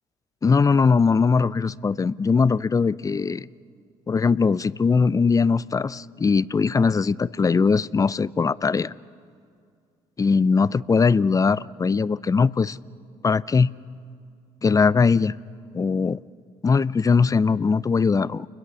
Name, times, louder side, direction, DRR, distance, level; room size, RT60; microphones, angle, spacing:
voice 1, 0.4-3.5 4.1-8.9 10.2-12.8 13.2-13.7 14.6-15.4 15.7-16.2 16.6-18.5, left 5 dB, 25° left, 0.5 m, -20 dB
29.5 x 21.5 x 6.2 m
supercardioid pair, 70°, 14 cm